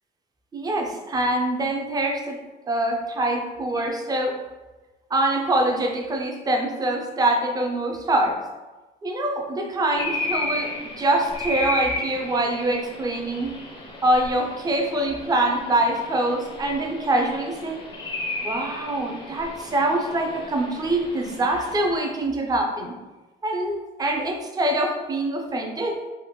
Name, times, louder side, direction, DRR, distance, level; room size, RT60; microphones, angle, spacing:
voice 1, 0.5-4.4 5.1-8.4 9.0-13.5 14.0-17.8 18.3-22.9 23.4-26.0, right 1 dB, 20° right, 2 dB, 0.5 m, -24 dB
sound 1, 9.9-22.0, left 2 dB, 30° left, 0.5 m, -34 dB
3.3 x 2.0 x 3.0 m, 1.2 s
cardioid pair, 110°, 17 cm